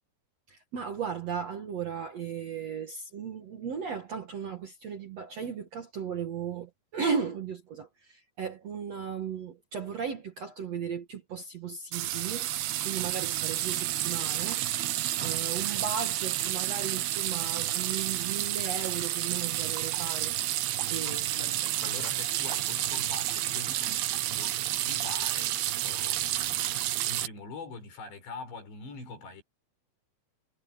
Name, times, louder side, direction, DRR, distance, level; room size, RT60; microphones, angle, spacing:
voice 1, 0.5-12.5 12.8-14.6 15.2-20.4 20.9-21.5, right 6 dB, 55° right, 1.9 m, -36 dB
sound 1, 11.9-27.3, right 14 dB, 70° right, 2.8 m, -30 dB
voice 2, 15.2-15.8 21.0-29.4, left 4 dB, 75° left, 7.5 m, -44 dB
omnidirectional pair, 5.0 m